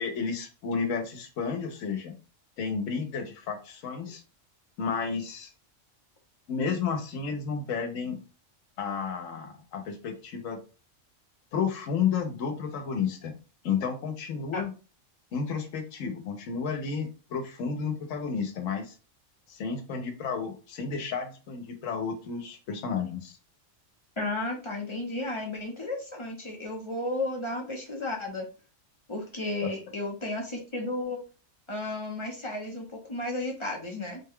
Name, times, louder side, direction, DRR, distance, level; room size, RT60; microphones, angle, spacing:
voice 1, 0.0-2.1 2.6-4.2 4.8-5.5 6.5-8.2 8.8-10.6 11.5-13.4 13.6-14.7 15.3-18.9 19.5-23.4 29.6-29.7, left 6 dB, 80° left, 5 dB, 1.1 m, -32 dB
voice 2, 24.2-28.5 29.1-31.2 31.7-34.2, left 2 dB, 30° left, -1 dB, 0.7 m, -33 dB
3.8 x 2.2 x 3.5 m, 0.34 s
omnidirectional pair, 1.3 m